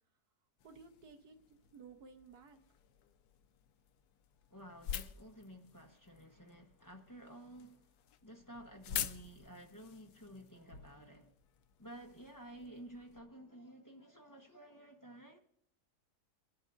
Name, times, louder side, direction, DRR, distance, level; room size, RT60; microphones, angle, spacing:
sound 1, 0.6-13.2, left 9 dB, 80° left, 1.2 m, -48 dB
voice 1, 0.6-2.6, right 5 dB, 75° right, 1.7 m, -56 dB
voice 2, 4.5-7.9 8.2-11.3 11.8-15.4, equal, 15° left, 1.0 m, -53 dB
24.0 x 11.0 x 2.6 m
omnidirectional pair, 1.7 m